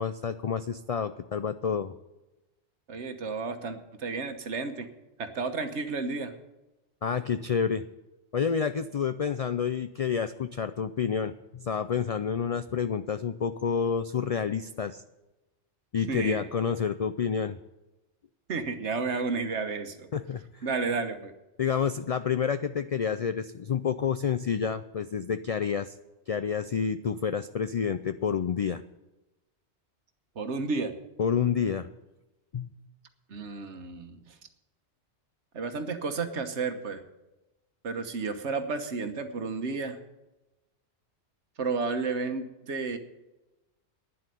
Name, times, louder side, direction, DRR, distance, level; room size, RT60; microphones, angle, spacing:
voice 1, 0.0-1.9 7.0-7.9 8.3-15.0 15.9-17.6 20.1-20.7 21.6-25.9 26.3-28.8 31.2-31.9 32.5-32.7, left 6 dB, 70° left, 11 dB, 0.3 m, -29 dB
voice 2, 2.9-4.9 5.2-6.3 16.1-16.5 18.5-20.1 20.6-21.3 30.3-30.9 33.3-34.3 35.5-37.0 37.8-40.0 41.6-43.0, right 4 dB, 75° right, 8 dB, 1.4 m, -32 dB
10.5 x 7.7 x 9.7 m, 1.0 s
omnidirectional pair, 1.2 m